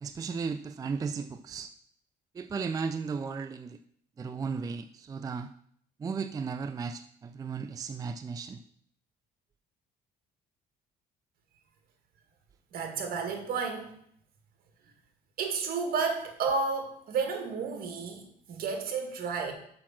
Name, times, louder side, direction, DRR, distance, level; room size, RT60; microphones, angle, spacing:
voice 1, 0.0-1.7 2.3-3.8 4.2-5.5 6.0-8.6, right 5 dB, 20° right, 10 dB, 0.3 m, -35 dB
voice 2, 12.7-13.9 15.4-19.5, right 5 dB, 60° right, 4 dB, 1.9 m, -32 dB
6.5 x 5.8 x 5.9 m, 0.66 s
cardioid pair, 110°, 17 cm